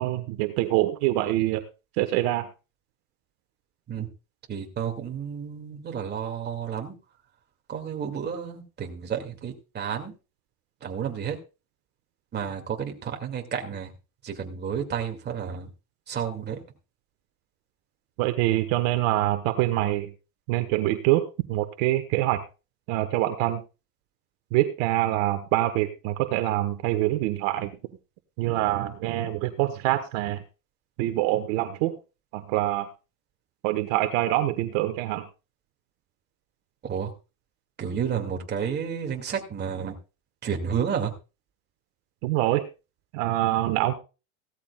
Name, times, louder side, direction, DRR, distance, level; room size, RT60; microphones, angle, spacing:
voice 1, 0.0-1.6 2.0-2.5 18.2-20.1 20.5-22.4 22.9-23.6 24.5-27.7 28.4-30.4 31.0-31.9 32.3-32.9 33.6-35.2 42.2-42.6 43.1-43.9, right 15 dB, 60° right, 8 dB, 1.4 m, -25 dB
voice 2, 4.5-7.0 7.7-10.1 10.8-11.4 12.3-13.9 14.2-15.7 16.1-16.6 36.8-37.1 37.8-40.0 40.4-41.1, right 7 dB, 20° right, 3 dB, 2.2 m, -31 dB
16.5 x 13.0 x 2.3 m, 0.31 s
supercardioid pair, 145°, 44 cm